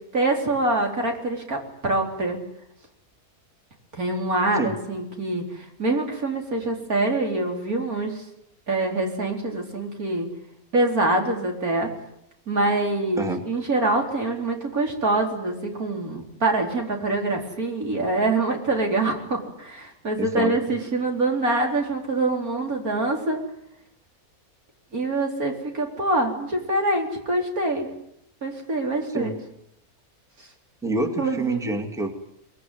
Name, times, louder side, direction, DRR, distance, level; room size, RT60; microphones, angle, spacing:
voice 1, 0.1-2.4 3.9-8.2 8.7-10.3 10.7-11.9 12.5-23.4 24.9-27.9 28.4-29.3 31.2-31.8, right 2 dB, 70° right, 1 dB, 4.6 m, -25 dB
voice 2, 20.2-20.5 29.1-29.3 30.8-32.1, right 2 dB, ahead, 5 dB, 2.2 m, -27 dB
23.5 x 21.0 x 9.5 m, 0.78 s
omnidirectional pair, 1.6 m